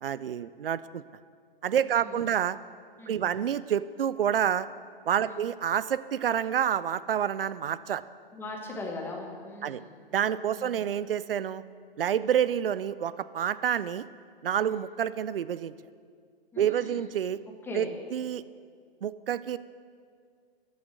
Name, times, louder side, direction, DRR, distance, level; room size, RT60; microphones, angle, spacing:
voice 1, 0.0-1.0 1.6-2.6 3.1-4.7 5.1-8.0 9.6-9.8 10.1-11.6 12.0-14.0 14.4-15.7 16.6-17.4 17.7-18.4 19.0-19.6, right 9 dB, 70° right, 16 dB, 0.4 m, -28 dB
voice 2, 1.8-2.2 3.0-3.4 5.2-5.4 8.3-10.0 10.5-10.8 12.2-12.3 14.6-14.8 16.5-17.0 17.6-18.0, left 2 dB, 5° left, 0 dB, 1.3 m, -40 dB
13.5 x 6.4 x 6.4 m, 2.1 s
figure-of-eight pair, 120°, 29 cm